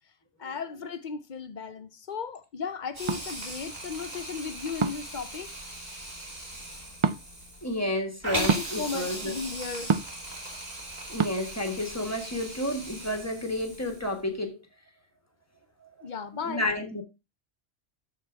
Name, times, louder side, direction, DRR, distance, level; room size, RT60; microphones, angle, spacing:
voice 1, 0.4-5.5 8.3-9.9 16.0-16.6, left 5 dB, 45° left, 0.8 m, -36 dB
Hiss, 2.9-14.2, right 1 dB, 35° right, 2.9 m, -39 dB
sound 1, 3.1-3.2 4.8-5.1 7.0-7.2 8.5-8.7 9.9-10.2 11.2-11.3, right 5 dB, 55° right, 0.3 m, -25 dB
voice 2, 7.6-9.3 11.1-14.6 15.8-15.9 16.4-17.0, left 1 dB, 15° left, 1.5 m, -31 dB
13.0 x 4.7 x 3.4 m
omnidirectional pair, 1.2 m